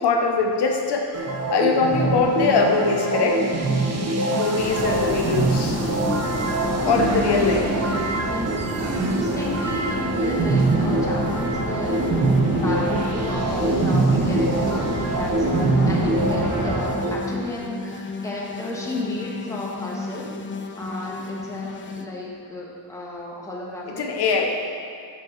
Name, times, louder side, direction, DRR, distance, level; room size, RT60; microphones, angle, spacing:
voice 1, 0.0-3.6 4.3-5.8 6.8-7.7 15.8-15.9 21.6-21.7 23.9-24.6, left 4 dB, 75° left, 2 dB, 0.8 m, -22 dB
sound 1, 1.1-17.1, right 2 dB, 40° right, 0.7 m, -24 dB
sound 2, 2.4-22.1, left 4 dB, 30° left, 0.4 m, -34 dB
sound 3, 4.5-16.8, right 1 dB, 60° right, 1.8 m, -30 dB
voice 2, 6.7-8.6 8.9-12.3 12.5-20.3 20.7-24.1, left 1 dB, 10° left, -4 dB, 1.3 m, -33 dB
7.9 x 5.2 x 4.5 m, 2.3 s
wide cardioid pair, 125°, 40 cm